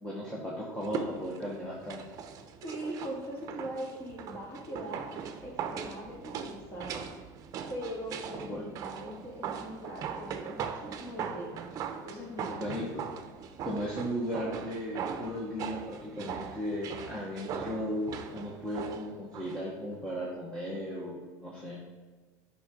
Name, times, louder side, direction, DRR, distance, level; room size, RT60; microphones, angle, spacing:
voice 1, 0.0-2.0 8.4-8.6 12.5-13.0 13.6-21.9, equal, 10° left, -5 dB, 1.2 m, -36 dB
sound 1, 0.8-19.6 19.9-20.0, right 7 dB, 40° right, 0.7 m, -40 dB
voice 2, 2.6-5.1 5.4-7.1 7.7-11.6 12.0-12.6, equal, 30° left, -3 dB, 2.4 m, -41 dB
9.8 x 5.6 x 3.8 m, 1.4 s
cardioid pair, 145°, 9 cm